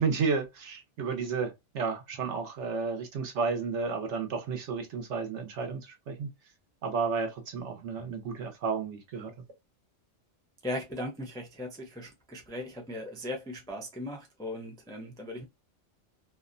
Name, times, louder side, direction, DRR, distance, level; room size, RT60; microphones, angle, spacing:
voice 1, 0.0-6.3 6.8-9.3, right 5 dB, 70° right, 1.1 m, -32 dB
voice 2, 10.6-15.4, left 1 dB, 5° left, 0.3 m, -38 dB
2.7 x 2.1 x 2.4 m
omnidirectional pair, 1.2 m